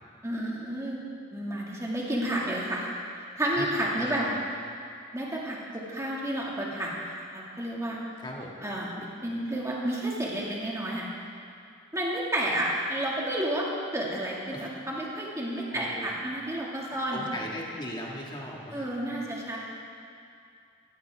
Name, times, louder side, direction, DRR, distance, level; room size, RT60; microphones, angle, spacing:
voice 1, 0.2-1.0 1.3-2.9 3.4-4.3 5.1-8.0 8.6-11.1 11.9-17.3 18.7-19.6, right 1 dB, 15° right, -4 dB, 2.0 m, -31 dB
voice 2, 4.0-4.4 8.2-8.5 14.5-14.7 15.7-16.1 17.1-19.0, left 1 dB, 20° left, -2 dB, 1.8 m, -38 dB
15.0 x 14.5 x 3.5 m, 2.4 s
head